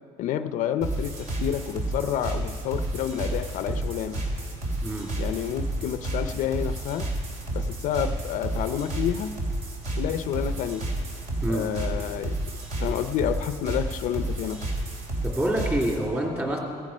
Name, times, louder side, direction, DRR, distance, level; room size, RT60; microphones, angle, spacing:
voice 1, 0.2-4.2 5.2-7.1 7.5-9.3 10.0-10.9 11.5-12.4 12.8-14.7, left 9 dB, 60° left, 10 dB, 0.5 m, -29 dB
sound 1, 0.8-16.0, right 1 dB, 55° right, 3.3 m, -31 dB
voice 2, 15.2-16.6, right 1 dB, 15° right, -1 dB, 2.9 m, -26 dB
16.0 x 15.0 x 5.5 m, 2.4 s
cardioid pair, 145°, 15 cm